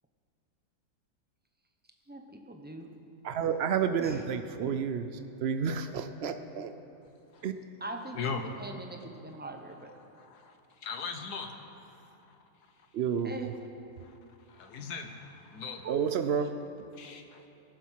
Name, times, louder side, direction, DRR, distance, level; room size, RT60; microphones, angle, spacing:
voice 1, 2.1-2.9 4.0-4.3 4.5-4.7 7.8-9.9 13.2-13.5, right 2 dB, 10° right, 3 dB, 0.7 m, -42 dB
voice 2, 3.2-5.1 5.4-6.7 7.4-7.5 12.9-13.4 15.8-16.5, right 7 dB, 75° right, 9 dB, 0.5 m, -30 dB
voice 3, 10.1-10.5 10.8-12.0 14.0-14.1 14.5-15.9 16.9-17.4, left 5 dB, 70° left, 5 dB, 1.6 m, -39 dB
21.5 x 7.4 x 5.8 m, 2.9 s
omnidirectional pair, 1.8 m